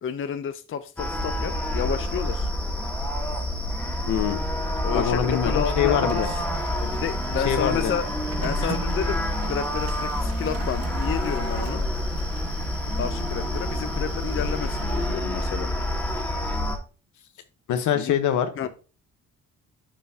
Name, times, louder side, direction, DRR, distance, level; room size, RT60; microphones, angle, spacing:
voice 1, 0.0-2.5 4.8-6.4 6.8-8.0 8.4-11.9 13.0-15.7 18.0-18.1 18.6-18.7, left 8 dB, 45° left, 11 dB, 0.6 m, -31 dB
sound 1, 1.0-16.8, left 1 dB, 5° left, 1.8 m, -27 dB
voice 2, 4.1-4.4 4.9-6.3 7.4-7.9 8.6-8.7 17.7-18.7, left 9 dB, 75° left, 9 dB, 1.1 m, -24 dB
Printer, 5.8-15.6, right 6 dB, 50° right, 1.1 m, -41 dB
10.0 x 5.5 x 2.8 m, 0.35 s
cardioid pair, 90°, 30 cm